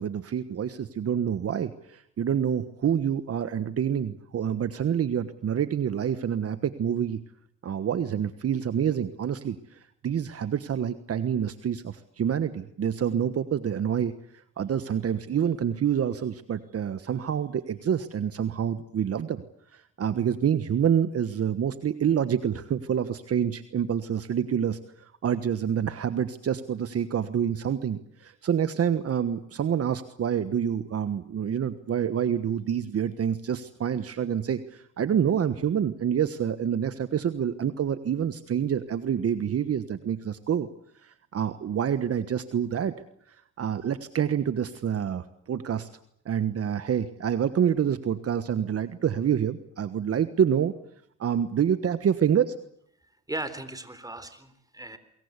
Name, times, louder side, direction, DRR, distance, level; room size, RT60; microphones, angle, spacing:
voice 1, 0.0-7.2 7.6-9.8 10.0-14.1 14.6-19.4 19.7-40.7 41.0-42.9 43.3-45.9 46.2-50.7 51.2-52.5, right 8 dB, 50° right, 12 dB, 1.4 m, -27 dB
voice 2, 53.3-55.0, right 2 dB, 10° right, 12 dB, 3.8 m, -37 dB
24.5 x 22.5 x 8.3 m, 0.68 s
cardioid pair, 90°, 30 cm